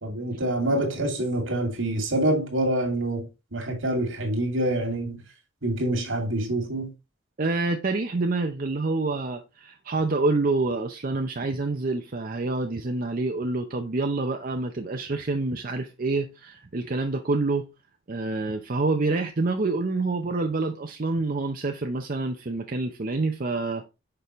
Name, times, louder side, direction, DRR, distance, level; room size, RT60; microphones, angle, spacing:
voice 1, 0.0-5.2 5.6-6.9, right 1 dB, 75° right, 2.4 m, -26 dB
voice 2, 7.4-17.6 18.1-23.8, right 3 dB, 45° right, 0.6 m, -27 dB
6.7 x 5.4 x 3.1 m
head